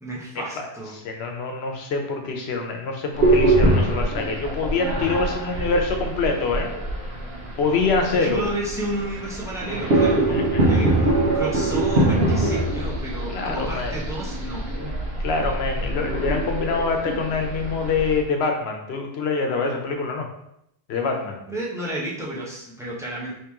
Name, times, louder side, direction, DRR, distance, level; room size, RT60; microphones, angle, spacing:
voice 1, 0.0-0.9 8.2-14.7 15.3-15.6 21.5-23.3, right 1 dB, 5° right, -4 dB, 0.8 m, -32 dB
voice 2, 0.9-6.7 7.6-8.4 10.3-10.7 13.3-14.0 15.2-20.3 20.9-21.4, left 4 dB, 85° left, 3 dB, 0.9 m, -25 dB
sound 1, 3.1-18.2, right 1 dB, 75° right, 1.1 m, -24 dB
3.1 x 2.9 x 3.5 m, 0.77 s
omnidirectional pair, 1.0 m